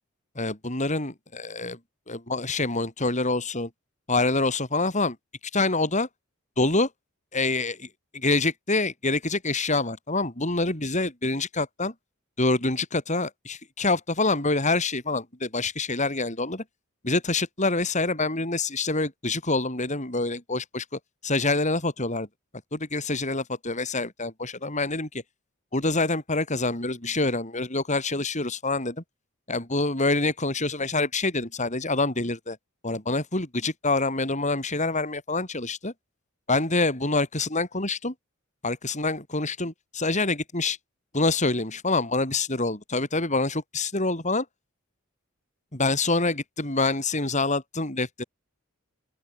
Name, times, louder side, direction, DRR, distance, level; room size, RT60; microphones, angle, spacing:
voice 1, 0.4-1.8 2.1-3.7 4.1-5.2 5.5-6.1 6.6-6.9 7.3-11.9 12.4-16.6 17.0-20.9 21.2-22.3 22.7-25.2 25.7-29.0 29.5-32.6 32.8-35.9 36.5-38.1 38.6-40.8 41.1-44.5 45.7-48.2, left 3 dB, 35° left, 5.4 m, -26 dB
open air
head